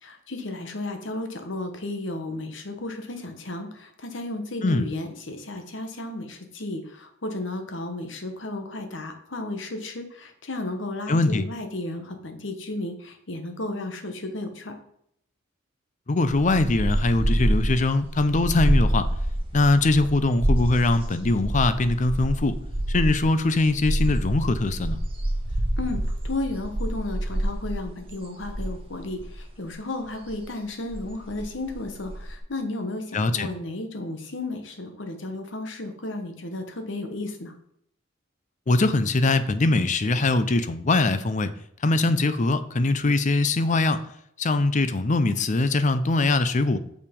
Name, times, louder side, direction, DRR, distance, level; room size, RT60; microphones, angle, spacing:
voice 1, 0.0-14.7 25.8-26.0 26.2-37.6, left 2 dB, 70° left, 6 dB, 1.3 m, -33 dB
voice 2, 11.1-11.4 16.1-19.1 19.5-22.6 22.9-25.0 33.1-33.5 38.7-41.5 41.8-44.0 44.4-46.8, left 2 dB, 40° left, 12 dB, 0.6 m, -22 dB
sound 1, 16.3-29.7 30.2-30.4 30.7-32.4, right 1 dB, 30° right, 1.7 m, -27 dB
6.6 x 5.7 x 5.3 m, 0.70 s
head